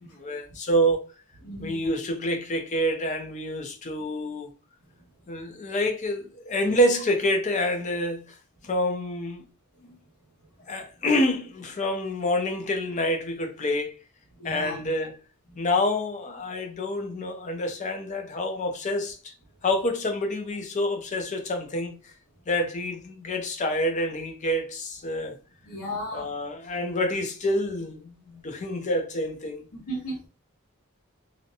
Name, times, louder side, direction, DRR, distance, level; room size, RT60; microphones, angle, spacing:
voice 1, 0.0-1.0 1.6-4.5 5.3-8.4 8.6-9.5 10.7-14.0 14.4-15.2 15.6-19.3 19.6-22.1 22.5-25.4 26.1-29.6, left 1 dB, 35° left, 0.5 m, -27 dB
voice 2, 1.4-1.8 14.4-14.8 25.6-26.3 29.7-30.2, equal, 90° left, 1.1 m, -34 dB
2.6 x 2.1 x 2.7 m
head